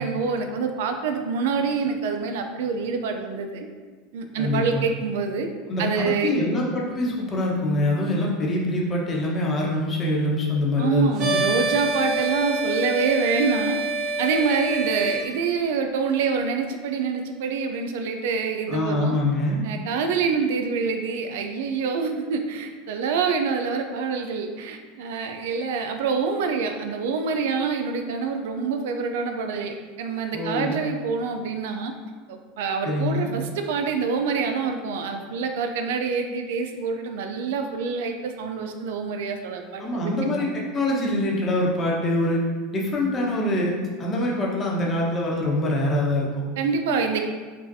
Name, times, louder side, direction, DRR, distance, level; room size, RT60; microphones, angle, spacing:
voice 1, 0.0-3.7 4.1-5.5 5.8-6.3 10.8-13.8 14.2-19.2 19.6-31.9 32.3-40.1 40.4-40.5 46.6-47.2, right 5 dB, 75° right, 5 dB, 0.4 m, -26 dB
voice 2, 4.4-4.8 5.7-11.4 18.7-19.6 30.3-30.8 32.8-33.3 39.8-42.4 42.7-46.4, left 1 dB, 30° left, -3 dB, 1.0 m, -24 dB
sound 1, 11.2-15.2, right 2 dB, 50° right, 0.9 m, -26 dB
5.3 x 2.4 x 2.7 m, 1.4 s
supercardioid pair, 110°, 0 cm